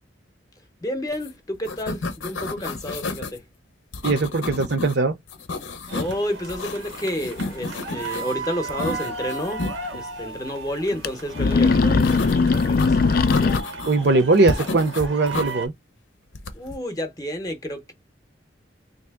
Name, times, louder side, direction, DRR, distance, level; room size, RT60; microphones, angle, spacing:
voice 1, 0.8-3.4 5.9-9.7 9.9-13.0 16.5-17.9, equal, 20° left, 0.7 m, -30 dB
sound 1, 1.1-1.3 1.5-3.4 3.9-4.9 5.3-6.2 6.5-8.3 8.7-9.8 12.0-12.9 13.3-14.1 14.5-15.5 16.3-16.8, left 3 dB, 85° left, 0.7 m, -31 dB
voice 2, 4.0-5.1 13.9-15.7, right 3 dB, 60° right, 0.6 m, -20 dB
sound 2, 5.9-15.7, right 3 dB, 90° right, 1.0 m, -35 dB
sound 3, 7.5-7.6 7.9-8.0 9.5-9.6 9.9-10.0 10.9-11.1 11.3-13.6, left 4 dB, 50° left, 0.3 m, -19 dB
3.2 x 2.7 x 3.4 m
head